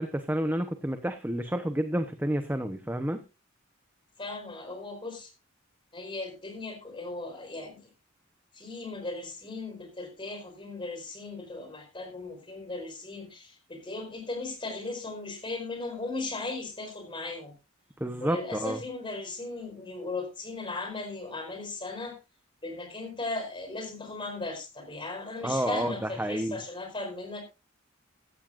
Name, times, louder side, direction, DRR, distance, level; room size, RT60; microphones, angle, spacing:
voice 1, 0.0-3.2 18.0-18.8 25.4-26.6, right 1 dB, 10° right, 7 dB, 0.9 m, -30 dB
voice 2, 4.2-5.3 5.9-7.9 8.5-17.5 18.2-22.2 22.6-27.4, left 3 dB, 25° left, 5 dB, 4.8 m, -37 dB
15.0 x 14.0 x 2.5 m, 0.28 s
head